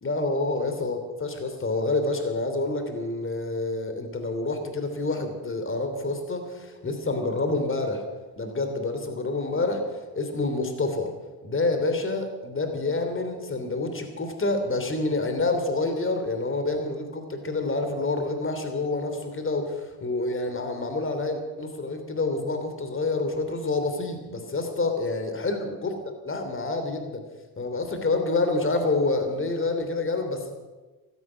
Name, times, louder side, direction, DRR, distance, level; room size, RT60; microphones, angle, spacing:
voice 1, 0.0-8.1 8.4-11.1 11.4-25.9 26.2-27.2 27.6-30.5, left 2 dB, 30° left, 6 dB, 3.2 m, -28 dB
14.5 x 14.0 x 6.3 m, 1.2 s
supercardioid pair, 80°, 42 cm